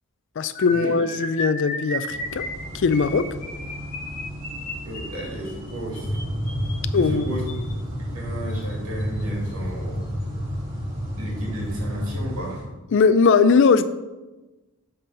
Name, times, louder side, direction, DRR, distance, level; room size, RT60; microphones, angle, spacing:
voice 1, 0.4-2.4 2.7-3.3 6.9-7.3 12.9-13.9, left 5 dB, 55° left, 13 dB, 0.4 m, -19 dB
sound 1, 0.5-7.7 8.5-8.7 9.0-9.2 9.5-9.7, left 1 dB, 40° left, 1.7 m, -35 dB
sound 2, 2.1-12.6, equal, 20° right, 1.7 m, -38 dB
voice 2, 4.8-6.2 6.9-7.5 8.0-10.1 11.2-12.7, right 1 dB, 80° right, -4 dB, 2.4 m, -33 dB
sound 3, 5.9-12.1, equal, 75° left, 1.9 m, -30 dB
7.8 x 3.8 x 5.5 m, 1.1 s
head